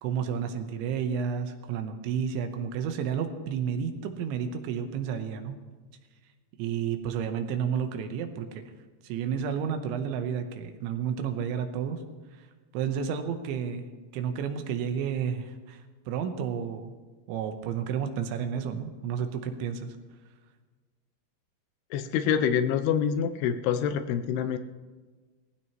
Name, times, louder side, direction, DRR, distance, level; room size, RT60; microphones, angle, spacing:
voice 1, 0.0-5.6 6.6-8.7 9.0-12.0 12.4-12.5 12.7-13.9 14.1-16.9 17.3-20.0, right 7 dB, 85° right, 7 dB, 3.3 m, -31 dB
voice 2, 21.9-24.6, left 8 dB, 80° left, 8 dB, 2.3 m, -26 dB
19.0 x 15.5 x 3.0 m, 1.4 s
omnidirectional pair, 5.3 m